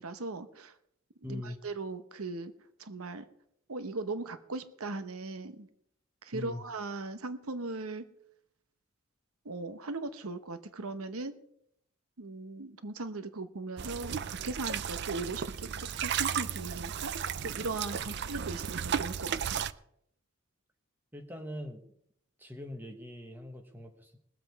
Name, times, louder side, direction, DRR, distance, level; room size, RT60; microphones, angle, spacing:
voice 1, 0.0-0.8 1.3-2.5 2.8-3.3 3.7-5.7 6.2-8.1 9.4-11.4 12.2-17.1 17.4-19.6, right 3 dB, 90° right, 11 dB, 1.0 m, -38 dB
voice 2, 1.2-1.6 6.3-6.6 18.0-18.1 21.1-21.8 22.4-24.2, left 1 dB, 10° right, 4 dB, 1.3 m, -42 dB
sound 1, 13.8-19.7, right 8 dB, 50° right, 0.4 m, -34 dB
21.0 x 7.8 x 4.7 m, 0.73 s
head